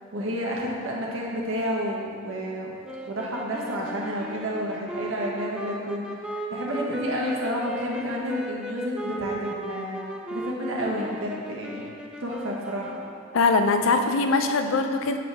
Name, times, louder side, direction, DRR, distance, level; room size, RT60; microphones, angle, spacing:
voice 1, 0.1-2.7 3.1-10.0 10.3-11.9 12.2-13.0, equal, 80° right, -3 dB, 1.3 m, -30 dB
sound 1, 2.8-13.3, right 1 dB, 5° right, 0.3 m, -36 dB
voice 2, 13.3-15.2, left 3 dB, 80° left, 7 dB, 0.5 m, -22 dB
7.4 x 5.1 x 3.5 m, 2.3 s
head